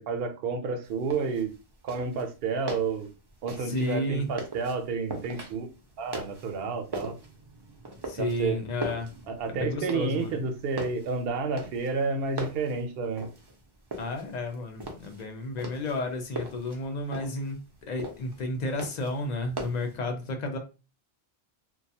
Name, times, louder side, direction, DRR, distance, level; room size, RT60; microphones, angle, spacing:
voice 1, 0.0-1.5 1.8-3.1 3.4-5.7 6.0-7.1 8.2-8.6 9.3-13.3, right 4 dB, 65° right, 6 dB, 0.7 m, -30 dB
sound 1, 0.8-20.0, right 2 dB, 35° right, 0.4 m, -41 dB
voice 2, 3.6-4.3 8.1-9.1 9.5-10.4 14.0-17.6 17.8-20.6, left 2 dB, 50° left, 5 dB, 0.5 m, -32 dB
2.3 x 2.3 x 2.7 m, 0.31 s
omnidirectional pair, 1.1 m